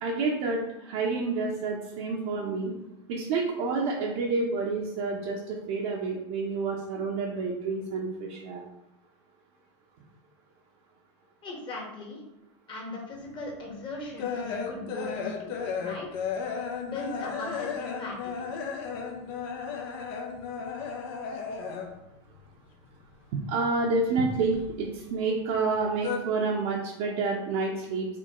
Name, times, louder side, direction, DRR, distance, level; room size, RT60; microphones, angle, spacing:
voice 1, 0.0-2.7 3.1-8.6 23.3-28.1, right 3 dB, 60° right, -3 dB, 0.8 m, -29 dB
voice 2, 11.4-12.2 12.7-16.1 16.8-18.5, left 2 dB, 30° left, -1 dB, 1.3 m, -38 dB
sound 1, 13.3-22.1 22.4-23.6 23.8-25.2 25.5-26.2, left 6 dB, 55° left, 0.7 m, -35 dB
5.0 x 2.8 x 3.0 m, 0.88 s
supercardioid pair, 120°, 15 cm